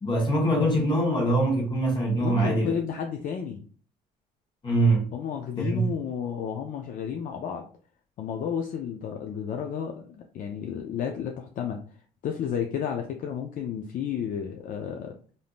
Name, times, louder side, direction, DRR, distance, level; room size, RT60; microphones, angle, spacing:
voice 1, 0.0-2.7 4.6-5.1 5.6-5.9, right 1 dB, 30° left, 1.2 m, -23 dB
voice 2, 2.2-3.6 5.1-7.6 8.2-11.8 12.2-15.1, left 8 dB, 55° left, 0.4 m, -32 dB
3.4 x 2.6 x 2.4 m
cardioid pair, 110°, 17 cm